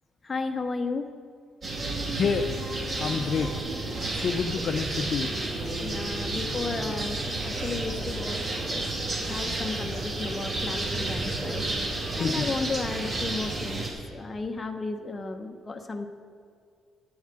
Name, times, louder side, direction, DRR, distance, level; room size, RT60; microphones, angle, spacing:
voice 1, 0.2-1.1 5.8-8.4 8.7-8.9 9.2-11.7 12.2-16.1, left 3 dB, 25° left, 4 dB, 0.8 m, -34 dB
sound 1, 1.6-13.9, right 2 dB, 40° right, 2.6 m, -31 dB
voice 2, 2.2-2.5 3.0-3.5 4.1-5.3 12.2-12.5, left 6 dB, 55° left, 5 dB, 0.6 m, -28 dB
9.6 x 7.2 x 8.9 m, 2.1 s
cardioid pair, 90°, 0 cm